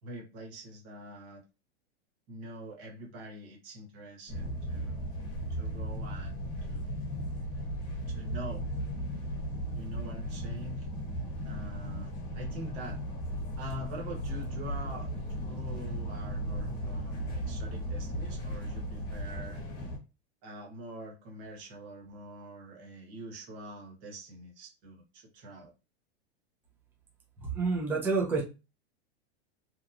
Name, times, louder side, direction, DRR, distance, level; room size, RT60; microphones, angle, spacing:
voice 1, 0.0-1.4 2.3-5.0 5.5-6.4 6.7-6.9 8.1-8.7 9.7-10.9 11.4-13.0 13.6-15.1 15.4-19.6 20.4-25.7, right 1 dB, 40° right, 0 dB, 1.2 m, -44 dB
sound 1, 4.3-20.0, equal, 35° left, 1.0 m, -36 dB
voice 2, 27.4-28.4, right 4 dB, 5° right, -2 dB, 0.4 m, -28 dB
2.9 x 2.2 x 2.4 m, 0.29 s
supercardioid pair, 155°, 32 cm